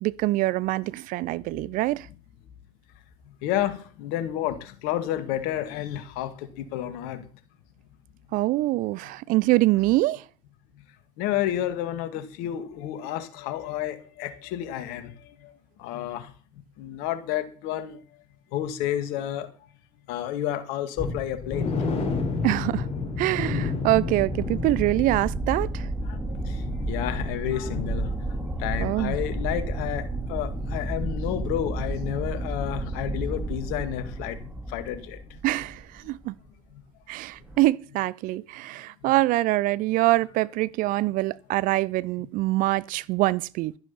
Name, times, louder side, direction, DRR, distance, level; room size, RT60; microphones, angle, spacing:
voice 1, 0.0-2.1 8.3-10.2 22.4-22.9 23.2-25.9 28.8-29.1 35.4-36.3 37.1-43.7, right 18 dB, 50° right, 0.6 m, -24 dB
voice 2, 3.4-7.2 11.2-15.1 15.4-15.5 15.8-16.3 16.8-18.0 18.5-19.5 20.1-21.7 22.4-22.5 26.1-26.6 26.9-35.2, left 11 dB, 60° left, 2.2 m, -30 dB
sound 1, 21.0-28.7 29.0-29.2 29.6-29.7, left 4 dB, 35° left, 4.6 m, -31 dB
sound 2, 24.2-36.2 37.4-37.6, right 2 dB, 10° right, 3.5 m, -32 dB
12.5 x 10.5 x 5.8 m
figure-of-eight pair, 65°, 17 cm